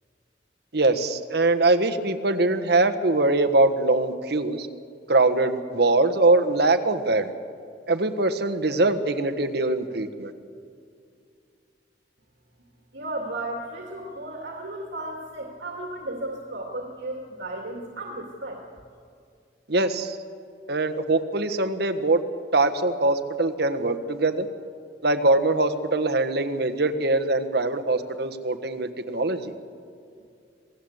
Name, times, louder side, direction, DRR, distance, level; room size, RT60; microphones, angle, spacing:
voice 1, 0.7-4.7 5.1-7.3 7.9-10.3 19.7-20.2 20.7-22.2 22.5-24.5 25.0-29.5, right 2 dB, 65° right, 8 dB, 1.3 m, -22 dB
voice 2, 12.9-18.6, right 1 dB, 85° right, 0 dB, 2.3 m, -34 dB
26.5 x 17.5 x 8.0 m, 2.4 s
head